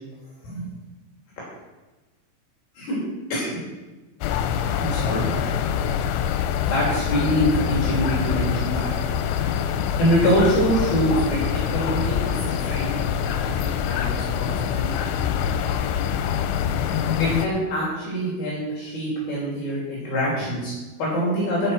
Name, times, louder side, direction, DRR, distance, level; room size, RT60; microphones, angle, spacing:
sound 1, 4.2-17.5, left 8 dB, 90° left, 3.2 m, -25 dB
voice 1, 4.8-5.3 6.6-9.0 10.0-15.1 17.2-21.7, equal, 60° left, -6 dB, 4.5 m, -25 dB
15.0 x 5.8 x 6.0 m, 1.2 s
omnidirectional pair, 5.4 m